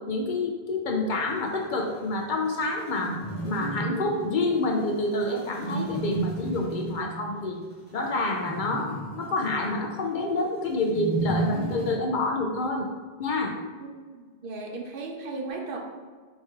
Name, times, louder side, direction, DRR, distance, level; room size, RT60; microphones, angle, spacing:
voice 1, 0.1-3.1 3.4-7.6 7.9-12.9 13.2-13.5, left 2 dB, 60° left, 1 dB, 0.6 m, -28 dB
sound 1, 1.3-11.9, right 2 dB, 10° right, 1.1 m, -33 dB
voice 2, 13.8-15.8, right 3 dB, 65° right, 1 dB, 0.8 m, -36 dB
4.3 x 3.0 x 3.5 m, 1.4 s
omnidirectional pair, 1.0 m